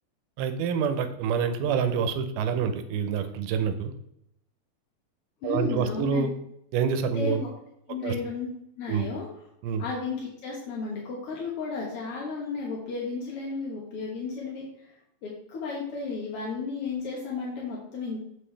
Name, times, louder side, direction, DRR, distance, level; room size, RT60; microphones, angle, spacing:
voice 1, 0.4-3.9 5.4-6.3 6.7-7.4 8.0-8.1 8.9-9.1 9.6-9.8, right 7 dB, 85° right, 9 dB, 2.6 m, -27 dB
voice 2, 5.4-6.3 7.1-7.5 7.9-8.5 8.8-9.3 9.8-14.9 15.2-18.2, left 4 dB, 60° left, -4 dB, 1.6 m, -33 dB
7.5 x 6.3 x 3.3 m, 0.78 s
omnidirectional pair, 4.3 m